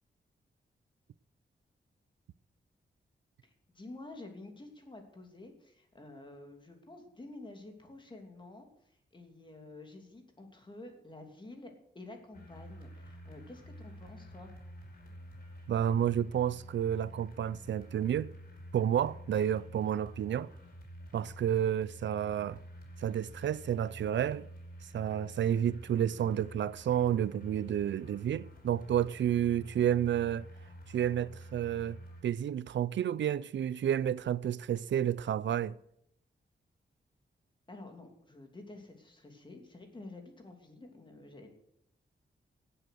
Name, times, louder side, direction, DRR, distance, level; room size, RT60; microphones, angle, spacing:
voice 1, 3.4-14.5 37.7-41.5, left 2 dB, 25° left, 2.9 m, -50 dB
sound 1, 12.3-32.2, equal, 55° left, 5.0 m, -49 dB
voice 2, 15.7-18.3 18.7-20.5 21.1-22.6 23.0-24.5 24.8-30.5 30.9-35.8, right 10 dB, 90° right, 0.5 m, -30 dB
17.0 x 7.9 x 6.5 m
wide cardioid pair, 140°, 18 cm